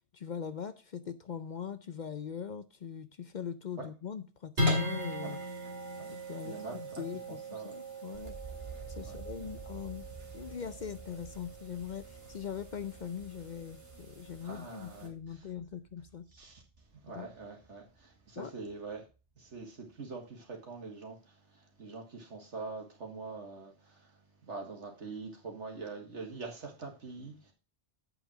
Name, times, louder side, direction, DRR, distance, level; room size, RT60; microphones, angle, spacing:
voice 1, 0.1-5.4 6.3-8.4 8.9-10.0 10.3-16.3 17.1-17.3 18.4-18.5, left 8 dB, 50° left, 0.6 m, -41 dB
sound 1, 4.6-15.1, left 1 dB, 60° right, 2.5 m, -39 dB
voice 2, 6.4-7.0 7.5-7.7 9.1-9.5 14.4-15.5 16.3-16.6 17.0-19.0 19.4-27.5, right 4 dB, 85° right, 2.4 m, -44 dB
sound 2, 8.1-18.1 18.4-19.1, right 3 dB, 30° right, 0.9 m, -51 dB
8.2 x 5.6 x 6.0 m
omnidirectional pair, 1.2 m